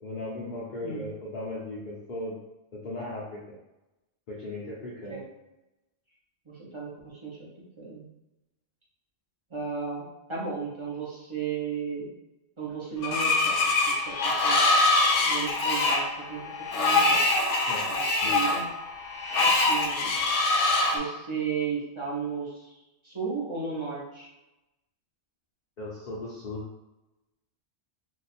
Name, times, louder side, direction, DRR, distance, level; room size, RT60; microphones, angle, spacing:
voice 1, 0.0-2.3 2.7-3.6 4.3-5.2 13.1-13.2 17.7-17.9 18.2-18.4 25.8-26.7, left 1 dB, 50° left, -5 dB, 0.7 m, -37 dB
voice 2, 6.5-7.5 7.8-8.1 9.5-12.1 12.6-13.6 14.0-14.6 15.2-16.0 16.3-17.3 17.9-18.7 19.4-20.1 20.9-22.7 23.0-24.3, right 5 dB, 30° right, -5 dB, 0.7 m, -34 dB
Screech, 13.0-21.0, left 2 dB, 85° left, 0.9 m, -24 dB
2.6 x 2.3 x 4.1 m, 0.97 s
omnidirectional pair, 1.2 m